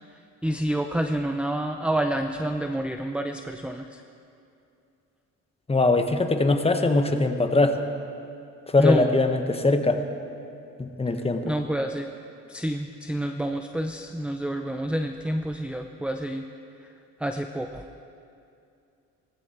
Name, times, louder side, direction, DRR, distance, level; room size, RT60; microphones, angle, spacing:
voice 1, 0.4-4.0 8.8-9.1 11.4-12.1 12.5-16.5 17.2-17.9, right 1 dB, 5° right, 5 dB, 0.6 m, -28 dB
voice 2, 5.7-7.8 8.7-10.0 10.8-11.4, left 2 dB, 20° left, 6 dB, 1.2 m, -22 dB
18.0 x 15.5 x 4.5 m, 2.5 s
cardioid pair, 90°, 30 cm